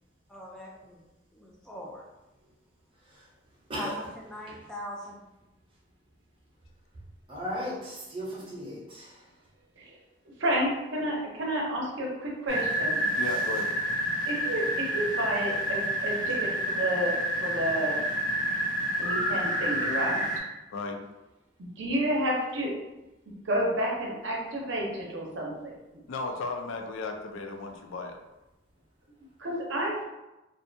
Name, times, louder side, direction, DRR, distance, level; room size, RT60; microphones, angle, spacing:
voice 1, 0.3-1.0 1.3-2.0 3.7-5.2, equal, 5° left, -4 dB, 0.3 m, -41 dB
voice 2, 7.3-9.1, equal, 25° right, -5 dB, 0.7 m, -35 dB
voice 3, 10.4-13.0 14.3-17.1 17.4-18.0 19.0-20.2 21.6-22.7 23.5-25.7 29.4-30.0, right 1 dB, 70° right, -2 dB, 0.6 m, -30 dB
sound 1, 12.5-20.4, equal, 40° left, 0.6 m, -29 dB
voice 4, 13.2-13.7 20.7-21.0 26.1-28.2, left 3 dB, 85° left, 5 dB, 0.4 m, -35 dB
2.4 x 2.2 x 2.6 m, 1.0 s
head